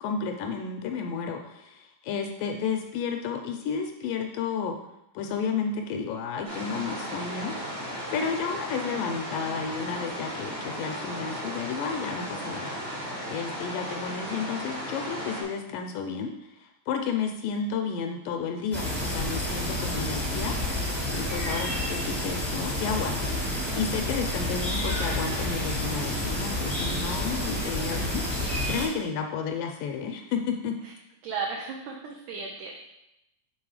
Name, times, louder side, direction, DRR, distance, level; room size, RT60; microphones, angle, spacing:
voice 1, 0.0-4.8 5.2-7.5 8.1-12.8 13.3-16.3 16.6-20.6 21.1-30.8, left 6 dB, 80° left, 4 dB, 2.1 m, -32 dB
sound 1, 6.4-15.4, equal, 30° right, 0.7 m, -35 dB
sound 2, 18.7-28.9, left 1 dB, ahead, 0.8 m, -29 dB
voice 2, 31.2-32.7, right 5 dB, 75° right, 0 dB, 1.9 m, -35 dB
6.1 x 3.7 x 4.8 m, 0.88 s
omnidirectional pair, 4.0 m